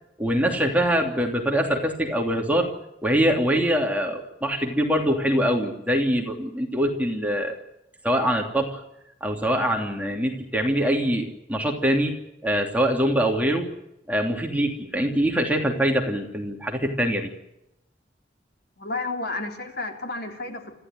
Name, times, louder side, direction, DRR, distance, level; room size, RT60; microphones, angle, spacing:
voice 1, 0.2-2.7 3.0-7.6 8.0-8.8 9.2-12.2 12.4-13.7 14.1-17.3, equal, 10° right, 1 dB, 3.0 m, -23 dB
voice 2, 18.8-20.8, left 3 dB, 60° left, 3 dB, 3.8 m, -31 dB
26.5 x 15.0 x 9.4 m, 0.85 s
head